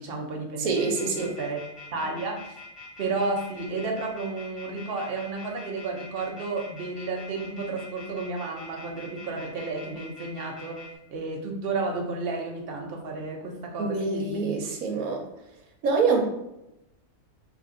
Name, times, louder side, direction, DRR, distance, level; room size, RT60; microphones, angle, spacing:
voice 1, 0.0-1.6 1.9-2.6 3.0-14.7, right 3 dB, 50° right, 1 dB, 0.8 m, -32 dB
voice 2, 0.6-1.3 13.8-15.3 15.8-16.3, right 4 dB, 85° right, 1 dB, 1.2 m, -25 dB
sound 1, 0.7-10.9, left 3 dB, 30° left, 1.3 m, -44 dB
3.4 x 2.9 x 3.7 m, 0.87 s
omnidirectional pair, 1.5 m